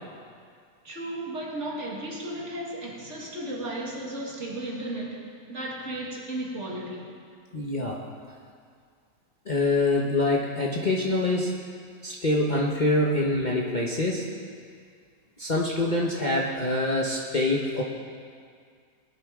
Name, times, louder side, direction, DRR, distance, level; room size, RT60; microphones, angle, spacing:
voice 1, 0.8-7.2, right 1 dB, 45° right, -2 dB, 2.1 m, -34 dB
voice 2, 7.5-8.0 9.5-11.6 12.0-14.3 15.4-17.8, left 2 dB, 30° left, -3 dB, 1.0 m, -25 dB
20.5 x 11.5 x 3.7 m, 2.2 s
omnidirectional pair, 1.7 m